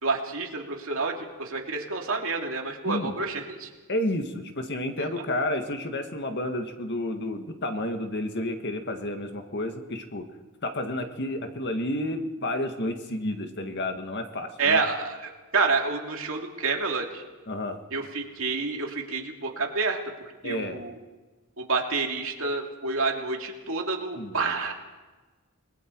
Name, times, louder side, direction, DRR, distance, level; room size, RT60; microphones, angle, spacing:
voice 1, 0.0-3.7 5.0-5.1 14.6-17.2 17.9-20.0 20.4-21.0 21.6-24.7, right 4 dB, 65° right, 1 dB, 2.8 m, -28 dB
voice 2, 3.9-10.2 10.6-14.8 17.5-17.8 20.4-20.8 24.2-24.5, left 1 dB, 50° left, 5 dB, 1.9 m, -31 dB
29.0 x 20.5 x 4.7 m, 1.2 s
head